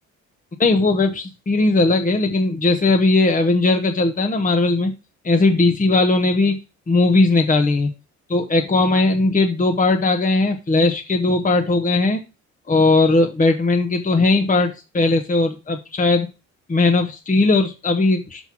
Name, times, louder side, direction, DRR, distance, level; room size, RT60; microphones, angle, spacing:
voice 1, 0.6-4.9 5.2-6.6 6.9-7.9 8.3-12.2 12.7-16.3 16.7-18.5, left 2 dB, 25° left, 5 dB, 1.2 m, -18 dB
6.3 x 5.4 x 5.9 m, 0.28 s
cardioid pair, 90°, 30 cm